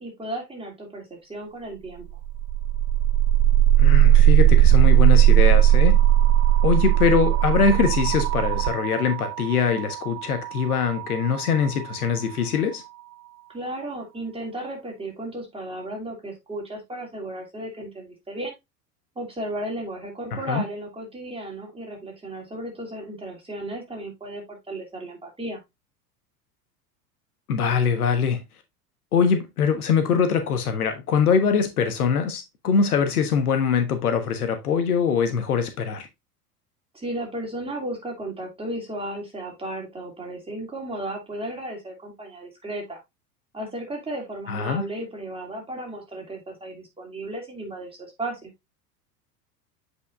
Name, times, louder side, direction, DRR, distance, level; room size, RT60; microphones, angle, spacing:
voice 1, 0.0-2.0 13.5-18.5 19.2-25.6 36.9-43.0 43.5-48.5, right 1 dB, 10° right, 2.9 m, -34 dB
sound 1, 2.1-12.1, right 12 dB, 55° right, 0.6 m, -18 dB
voice 2, 3.8-6.0 6.6-12.8 20.5-20.6 27.5-28.4 29.1-36.1 44.5-44.8, left 6 dB, 65° left, 1.3 m, -23 dB
8.2 x 5.1 x 2.5 m
figure-of-eight pair, 80°, 47 cm